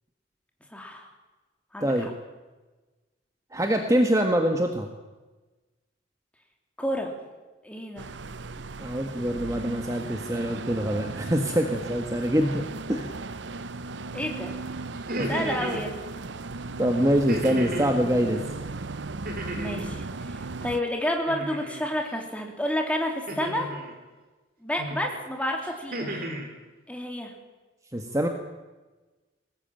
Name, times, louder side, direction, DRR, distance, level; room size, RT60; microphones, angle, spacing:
voice 1, 0.7-1.1 1.7-1.9 6.8-7.1 7.6-8.1 14.1-14.5 15.3-16.0 19.6-23.7 24.6-26.3 26.9-27.3, equal, 5° left, 2 dB, 3.5 m, -30 dB
voice 2, 3.5-4.9 8.8-12.6 12.9-13.1 15.2-15.5 16.8-18.4 27.9-28.3, equal, 15° right, 4 dB, 1.5 m, -24 dB
sound 1, 8.0-20.8, right 3 dB, 70° right, 0.8 m, -37 dB
sound 2, 14.9-15.9 17.3-18.0 19.3-19.9 21.3-21.8 23.3-23.9 24.8-25.2 25.6-26.5, right 1 dB, 50° right, 4.2 m, -34 dB
21.5 x 18.5 x 9.0 m, 1.2 s
head